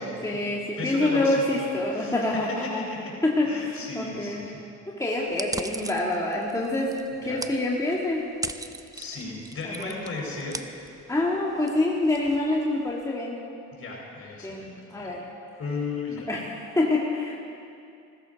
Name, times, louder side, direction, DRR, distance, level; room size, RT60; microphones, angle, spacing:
voice 1, 0.0-2.8 3.2-4.5 4.9-6.9 7.2-8.3 9.6-10.0 11.1-13.4 14.4-15.2 16.3-17.4, left 2 dB, 10° left, -4 dB, 1.8 m, -26 dB
voice 2, 0.8-3.1 3.4-4.6 7.1-7.4 8.9-10.7 13.7-15.2 15.6-16.3, left 3 dB, 45° left, -2 dB, 4.6 m, -35 dB
sound 1, 5.3-13.0, right 2 dB, 10° right, 0.6 m, -40 dB
16.0 x 14.0 x 5.2 m, 2.5 s
cardioid pair, 90°, 30 cm